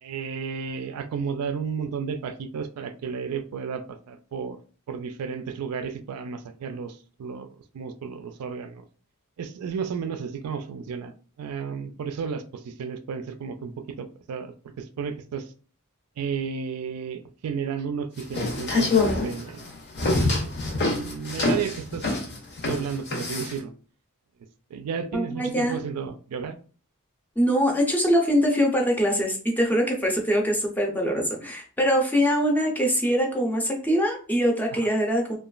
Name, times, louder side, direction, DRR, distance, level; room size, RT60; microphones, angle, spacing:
voice 1, 0.0-4.6 4.9-7.5 7.7-8.8 9.4-15.5 16.2-19.7 20.4-20.5 20.8-22.1 22.6-23.7 24.7-26.6 34.7-34.8, right 6 dB, 75° right, 8 dB, 0.3 m, -33 dB
sound 1, 18.2-23.6, left 3 dB, 50° left, 0.7 m, -25 dB
voice 2, 25.1-25.8 27.4-35.4, equal, 10° left, 1 dB, 0.5 m, -23 dB
2.9 x 2.3 x 2.4 m, 0.39 s
head